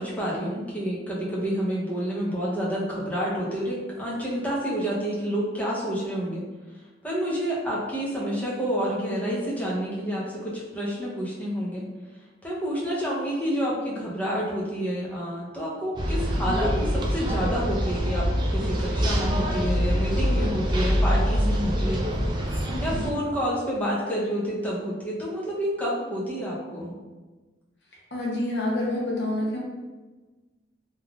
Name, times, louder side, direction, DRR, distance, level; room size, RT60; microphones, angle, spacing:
voice 1, 0.0-6.4 7.0-11.8 12.4-22.0 22.8-27.0 28.9-29.1, equal, 10° left, -6 dB, 0.7 m, -29 dB
sound 1, 16.0-23.1, equal, 25° right, 0.3 m, -25 dB
voice 2, 22.7-23.1 28.1-29.6, left 1 dB, 65° left, -4 dB, 0.8 m, -28 dB
3.3 x 2.4 x 2.3 m, 1.2 s
head